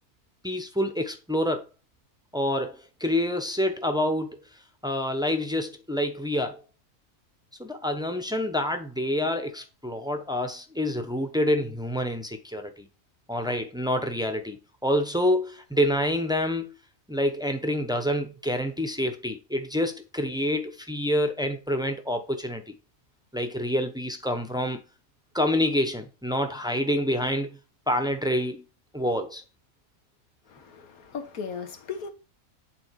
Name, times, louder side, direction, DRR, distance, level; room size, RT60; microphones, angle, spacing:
voice 1, 0.4-1.6 2.3-4.4 4.8-6.6 7.6-12.9 13.3-14.6 14.8-16.7 17.1-22.6 23.3-24.8 25.3-27.5 27.9-28.6 28.9-29.4, left 1 dB, 5° right, 0.7 m, -27 dB
voice 2, 30.5-32.1, left 6 dB, 90° left, 1.7 m, -37 dB
8.7 x 3.9 x 4.7 m
omnidirectional pair, 1.5 m